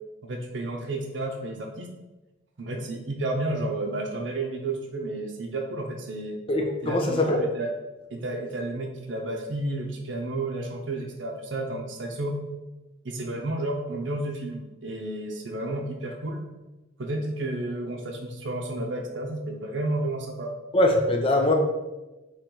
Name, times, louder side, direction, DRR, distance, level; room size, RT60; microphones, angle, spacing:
voice 1, 0.2-1.9 2.6-6.4 6.8-7.7 8.1-12.4 13.0-16.4 17.0-20.5, right 2 dB, 70° right, 2 dB, 0.7 m, -31 dB
voice 2, 6.5-7.4 20.7-21.5, left 1 dB, 30° left, 3 dB, 0.6 m, -22 dB
3.8 x 3.1 x 4.4 m, 1.1 s
head